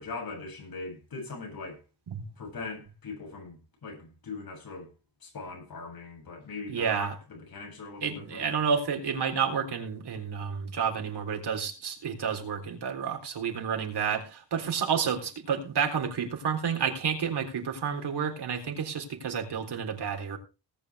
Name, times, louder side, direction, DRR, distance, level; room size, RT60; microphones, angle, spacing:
voice 1, 0.0-1.8 2.4-4.9 5.2-8.6, left 3 dB, 60° left, 7.8 m, -40 dB
voice 2, 6.7-7.1 8.0-20.4, right 6 dB, 70° right, 3.8 m, -30 dB
19.0 x 8.8 x 3.6 m
wide cardioid pair, 180°, 41 cm